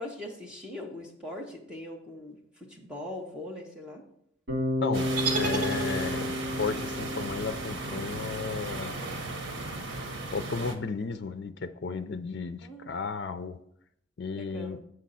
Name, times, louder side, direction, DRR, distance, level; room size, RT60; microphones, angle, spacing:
voice 1, 0.0-4.0 12.6-12.9 14.4-14.8, left 1 dB, 5° right, -1 dB, 1.1 m, -41 dB
Bass guitar, 4.5-8.5, left 1 dB, 65° right, 2.9 m, -32 dB
voice 2, 4.8-9.0 10.3-13.6 14.2-14.8, left 4 dB, 60° left, 9 dB, 0.4 m, -34 dB
sound 1, 4.9-10.7, right 2 dB, 85° right, 1.1 m, -36 dB
sound 2, 5.2-6.5, right 4 dB, 45° right, 1.5 m, -32 dB
7.7 x 6.4 x 4.2 m, 0.72 s
head